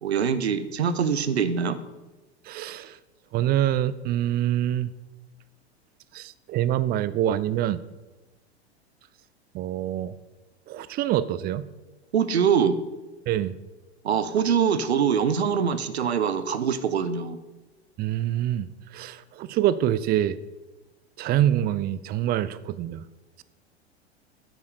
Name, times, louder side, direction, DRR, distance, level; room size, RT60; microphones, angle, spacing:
voice 1, 0.0-1.8 12.1-12.8 14.0-17.4, right 7 dB, 70° right, 13 dB, 1.2 m, -23 dB
voice 2, 2.5-3.0 3.3-4.9 6.1-7.8 9.5-10.1 10.7-11.7 13.3-13.5 18.0-20.4 21.2-23.0, right 12 dB, 30° right, 17 dB, 0.6 m, -25 dB
12.5 x 10.5 x 5.1 m, 1.1 s
figure-of-eight pair, 90°, 33 cm